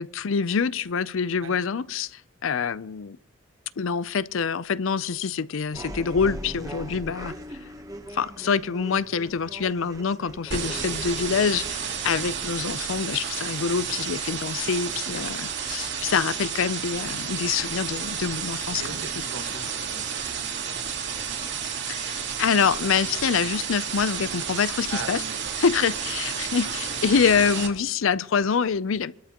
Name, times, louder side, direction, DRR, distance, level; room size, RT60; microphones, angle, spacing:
voice 1, 0.0-3.2 3.8-7.3 8.1-18.8 21.9-25.2 25.6-29.1, left 6 dB, 75° left, 0.5 m, -26 dB
sound 1, 5.7-14.3, right 1 dB, 15° right, 1.0 m, -41 dB
sound 2, 10.5-27.7, right 7 dB, 55° right, 2.6 m, -31 dB
voice 2, 18.8-20.8 24.9-25.6, right 4 dB, 70° right, 1.6 m, -40 dB
25.0 x 13.0 x 3.0 m
head